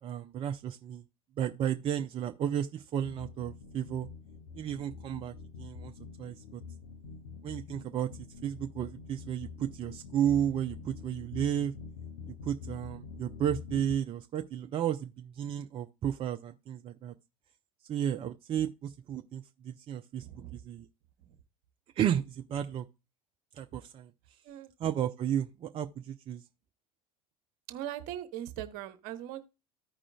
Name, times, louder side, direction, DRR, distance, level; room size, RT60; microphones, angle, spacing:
voice 1, 0.0-1.0 1.4-4.1 4.6-5.9 6.2-6.6 7.4-11.7 12.4-17.1 17.9-20.3 20.5-20.9 22.0-22.9 23.5-24.1 24.8-26.4, right 10 dB, 30° right, 0.5 m, -33 dB
sound 1, 3.0-14.0, left 5 dB, 70° left, 1.0 m, -46 dB
voice 2, 20.2-20.6 21.2-21.4 24.4-24.7 27.7-29.4, right 12 dB, 50° right, 1.0 m, -40 dB
14.5 x 4.9 x 2.3 m
figure-of-eight pair, 75°, 19 cm